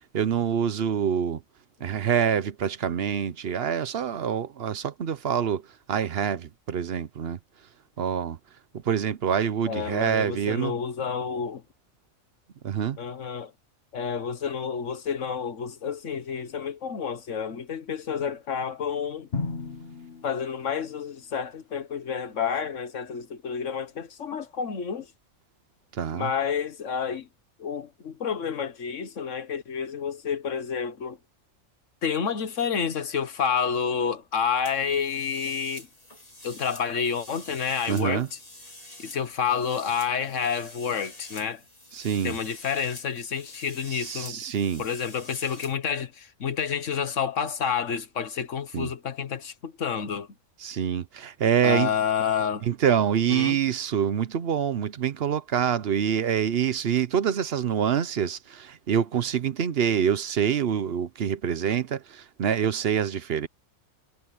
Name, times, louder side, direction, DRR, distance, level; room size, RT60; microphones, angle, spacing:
voice 1, 0.1-1.4 1.8-5.6 5.9-7.4 8.0-8.4 8.8-10.7 12.6-13.0 26.0-26.3 37.9-38.3 41.9-42.4 43.9-44.8 48.7-48.9 50.6-51.9 52.6-63.5, right 8 dB, 55° right, 0.9 m, -26 dB
voice 2, 9.7-11.6 13.0-13.5 13.9-19.3 20.2-25.1 26.1-27.3 27.6-31.2 32.0-35.9 36.4-38.4 39.0-41.6 42.2-44.4 44.8-50.3 51.6-52.7 53.3-53.6, left 7 dB, 65° left, 1.6 m, -29 dB
Drum, 19.3-21.3, left 4 dB, 50° left, 1.6 m, -35 dB
sound 1, 34.7-45.8, left 1 dB, 30° left, 4.6 m, -47 dB
omnidirectional pair, 1.4 m